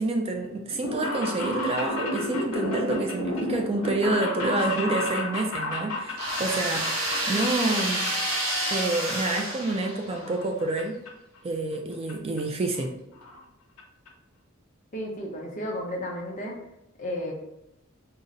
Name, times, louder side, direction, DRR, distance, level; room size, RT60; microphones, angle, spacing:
voice 1, 0.0-6.8 7.3-8.1 8.7-10.9 11.4-12.9, right 2 dB, 25° right, 3 dB, 0.3 m, -28 dB
sound 1, 0.7-8.4 8.7-9.4 9.7-10.8 11.1-11.2 12.1-12.2 12.4-12.5 12.7-12.8 13.1-13.4 13.8-13.9 14.1-14.2, left 2 dB, 80° left, 0.7 m, -32 dB
sound 2, 6.2-10.3, right 1 dB, 75° right, 0.9 m, -29 dB
voice 2, 14.9-16.6 17.0-17.3, equal, 35° left, 0 dB, 0.7 m, -33 dB
3.8 x 2.1 x 3.7 m, 0.84 s
head